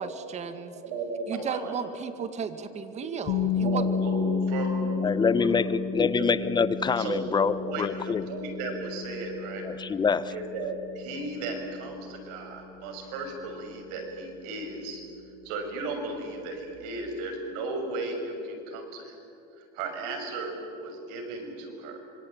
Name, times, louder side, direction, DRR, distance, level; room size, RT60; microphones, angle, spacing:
voice 1, 0.0-0.8 1.3-3.9, right 7 dB, 35° right, 10 dB, 2.0 m, -35 dB
voice 2, 0.8-1.9 2.9-6.3 6.7-9.6 10.3-15.0 15.4-19.2 19.6-22.0, right 3 dB, 80° right, 4 dB, 6.4 m, -35 dB
sound 1, 3.3-15.1, left 5 dB, 55° left, 7.4 m, -33 dB
voice 3, 5.0-8.3 9.7-10.3, left 5 dB, 20° left, 15 dB, 1.0 m, -25 dB
26.0 x 24.0 x 8.9 m, 2.6 s
supercardioid pair, 120°, 20 cm